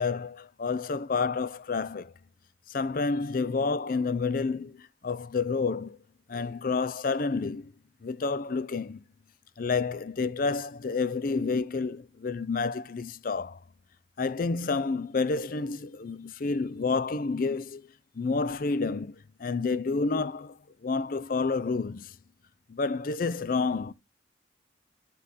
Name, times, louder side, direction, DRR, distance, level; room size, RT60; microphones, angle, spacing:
voice 1, 0.0-2.1 2.7-6.0 6.3-7.7 8.0-9.0 9.6-13.6 14.2-17.9 18.1-22.2 22.7-23.9, left 4 dB, 50° left, 0.5 m, -29 dB
11.0 x 3.9 x 4.1 m
head